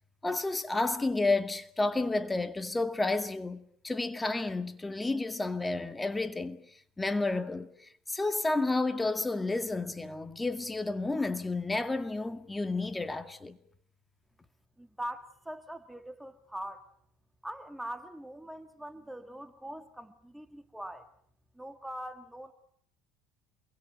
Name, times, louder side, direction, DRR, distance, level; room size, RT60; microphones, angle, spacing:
voice 1, 0.2-6.6 7.0-7.7 8.1-13.6, left 2 dB, 15° left, 2.1 m, -31 dB
voice 2, 14.8-16.8 17.4-21.1 21.6-22.5, right 1 dB, 5° right, 1.8 m, -42 dB
28.0 x 23.0 x 7.8 m
supercardioid pair, 90°, 0 cm